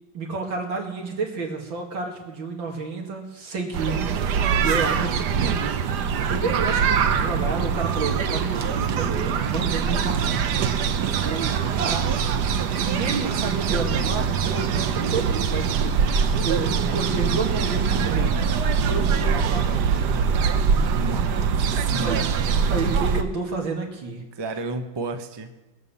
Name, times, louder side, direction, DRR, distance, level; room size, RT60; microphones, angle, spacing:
voice 1, 0.1-10.4 11.2-11.5 11.8-12.3 12.8-16.1 16.4-18.4 18.8-20.7 21.9-22.2 22.6-24.2, right 4 dB, 90° right, 1 dB, 2.9 m, -31 dB
sound 1, 3.7-23.2, right 6 dB, 65° right, 1.4 m, -23 dB
voice 2, 20.9-21.3 21.6-22.5 24.4-25.5, right 3 dB, 25° right, 6 dB, 0.5 m, -32 dB
20.5 x 7.4 x 7.1 m, 1.1 s
omnidirectional pair, 2.0 m